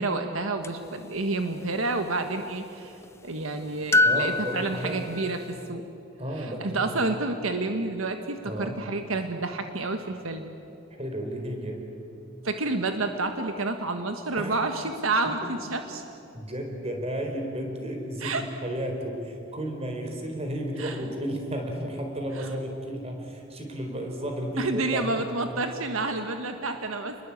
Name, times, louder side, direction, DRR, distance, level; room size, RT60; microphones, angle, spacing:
voice 1, 0.0-2.9 3.2-5.8 6.4-10.6 12.4-16.0 18.2-18.4 20.8-21.0 22.3-22.5 24.6-27.1, right 2 dB, 80° right, 6 dB, 1.5 m, -29 dB
sound 1, 0.6-0.7 3.9-5.4, left 2 dB, 15° left, 0.5 m, -24 dB
voice 2, 4.0-5.0 6.2-7.0 8.4-8.8 10.9-11.8 14.4-14.6 15.4-15.5 16.3-25.3, equal, 30° right, 3 dB, 4.4 m, -33 dB
29.5 x 21.0 x 8.7 m, 2.8 s
head